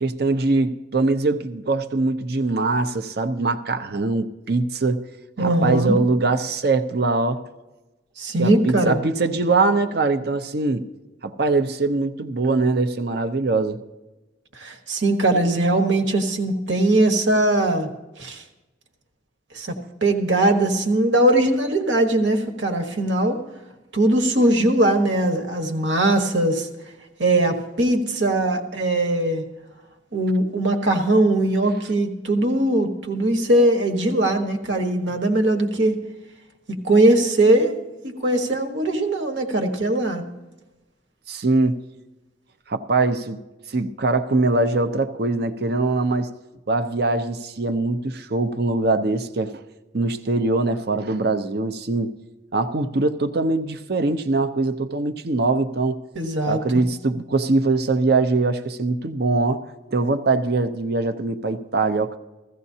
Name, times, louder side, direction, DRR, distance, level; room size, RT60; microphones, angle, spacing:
voice 1, 0.0-5.0 5.4-7.4 8.4-10.9 11.2-13.8 41.3-41.8 42.7-43.4 43.7-46.3 46.7-49.6 49.9-52.1 52.5-56.0 56.5-59.6 59.9-62.2, right 3 dB, 55° right, 0.7 m, -22 dB
voice 2, 5.4-6.0 8.2-9.0 14.5-17.9 18.2-18.4 19.5-19.8 20.0-23.4 23.9-26.7 27.2-29.4 30.1-36.0 36.7-37.7 38.0-40.2 56.1-56.6, right 1 dB, 75° right, 1.4 m, -20 dB
15.5 x 15.0 x 2.8 m
head